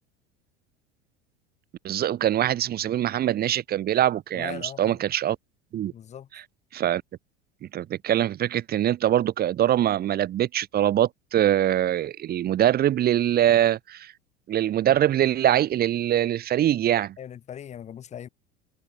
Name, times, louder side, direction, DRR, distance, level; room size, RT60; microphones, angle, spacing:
voice 1, 1.8-5.4 5.7-5.9 6.3-6.4 6.7-7.0 7.6-14.1 14.5-17.2, right 11 dB, 30° right, 0.6 m, -23 dB
voice 2, 4.3-5.0 5.9-6.3 17.2-18.3, left 9 dB, 20° left, 0.5 m, -39 dB
figure-of-eight pair, 75°, 33 cm